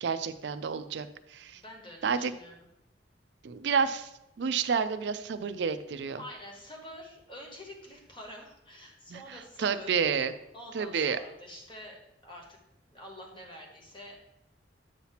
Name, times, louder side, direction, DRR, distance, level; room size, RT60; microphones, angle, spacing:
voice 1, 0.0-1.6 2.0-2.3 3.4-4.1 4.4-6.2 9.1-10.3 10.7-11.2, right 6 dB, 70° right, 12 dB, 0.4 m, -30 dB
voice 2, 1.5-2.7 6.2-9.9 10.5-12.6 12.9-14.2, equal, 25° left, 0 dB, 1.2 m, -47 dB
8.1 x 2.9 x 5.7 m, 0.87 s
head